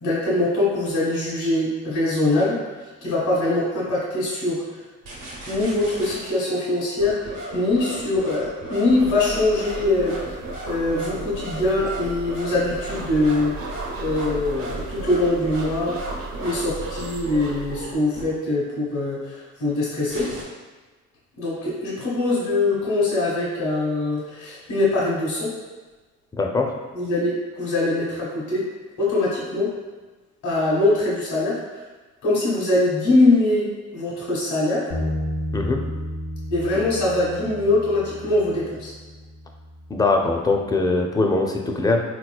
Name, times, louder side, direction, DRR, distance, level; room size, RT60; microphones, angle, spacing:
voice 1, 0.0-2.6 3.0-4.6 5.5-10.2 10.6-16.0 16.4-20.3 21.4-25.5 26.9-28.6 29.0-29.7 30.4-31.6 32.2-34.9 36.5-38.9, left 2 dB, 80° left, -6 dB, 1.2 m, -23 dB
sound 1, 5.0-6.3 7.0-18.3 20.0-20.4, right 2 dB, 85° right, 1.1 m, -35 dB
sound 2, 8.9-17.8, right 3 dB, 50° right, 0.5 m, -36 dB
voice 2, 26.3-26.7 35.5-35.8 39.9-42.0, left 3 dB, 15° left, 2 dB, 0.4 m, -21 dB
Bass guitar, 34.9-41.2, left 1 dB, 60° left, 0.6 m, -33 dB
3.9 x 2.9 x 2.3 m, 1.3 s
cardioid pair, 90°, 30 cm